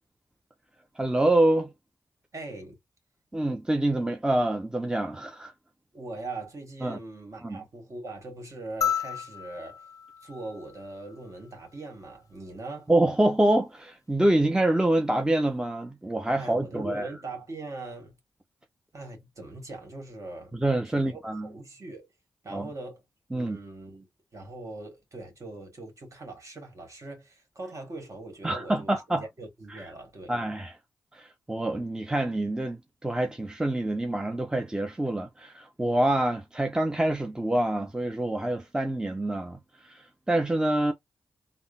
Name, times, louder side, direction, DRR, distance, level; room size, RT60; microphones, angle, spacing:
voice 1, 1.0-1.7 3.3-5.5 6.8-7.0 7.4-7.6 12.9-17.1 20.5-21.5 22.5-22.7 23.3-23.6 28.4-29.2 29.7-29.8 30.3-30.7 31.1-39.6 39.8-40.9, right 1 dB, 10° right, 0.6 m, -26 dB
voice 2, 2.3-2.8 5.9-9.8 10.2-12.9 16.4-18.1 18.9-20.5 20.8-22.1 22.4-23.0 23.3-29.0 29.4-30.4, right 2 dB, 50° right, 1.5 m, -41 dB
sound 1, 8.8-11.4 13.0-13.1, left 8 dB, 50° left, 0.5 m, -33 dB
3.6 x 2.0 x 2.3 m
supercardioid pair, 45°, 7 cm